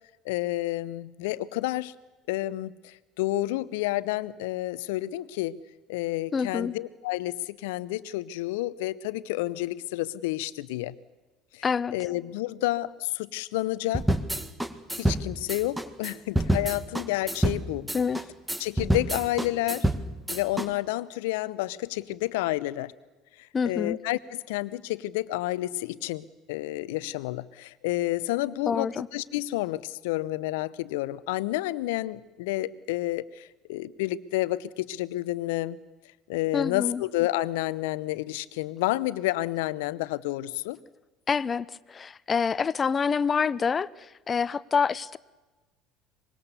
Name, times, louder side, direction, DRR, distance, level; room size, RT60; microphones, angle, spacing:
voice 1, 0.2-1.9 2.3-5.6 5.9-10.9 11.5-11.6 11.9-14.1 14.9-17.9 18.6-19.9 20.3-22.9 23.4-35.8 36.3-40.8, left 17 dB, 70° left, 0.8 m, -30 dB
voice 2, 6.3-6.7 11.6-12.0 17.9-18.2 23.5-24.0 28.7-29.1 36.5-37.0 41.3-45.2, left 6 dB, 30° left, 0.7 m, -27 dB
sound 1, 13.9-20.7, right 1 dB, 10° right, 1.9 m, -28 dB
24.5 x 22.0 x 7.0 m
hypercardioid pair, 65°, 0 cm